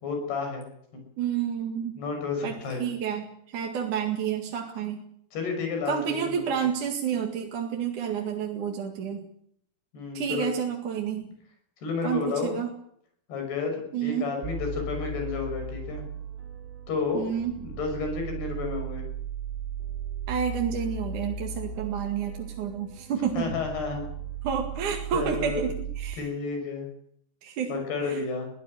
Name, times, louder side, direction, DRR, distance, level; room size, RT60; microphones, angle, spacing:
voice 1, 0.0-1.0 2.0-2.9 5.3-6.0 6.3-6.6 9.9-10.5 11.8-12.5 13.3-16.1 16.9-17.2 17.6-19.1 23.3-24.1 25.1-25.7 26.2-26.9 27.7-28.5, left 5 dB, 65° left, 4 dB, 8.0 m, -31 dB
voice 2, 1.2-2.0 2.4-5.0 5.9-9.2 10.1-11.3 12.0-12.7 13.9-14.3 17.1-17.5 20.3-23.5 24.4-26.3 27.4-27.7 28.0-28.2, right 8 dB, 50° right, 2 dB, 3.1 m, -30 dB
sound 1, 14.4-26.2, right 5 dB, 85° right, 4.9 m, -36 dB
22.0 x 16.0 x 9.0 m, 0.69 s
omnidirectional pair, 5.0 m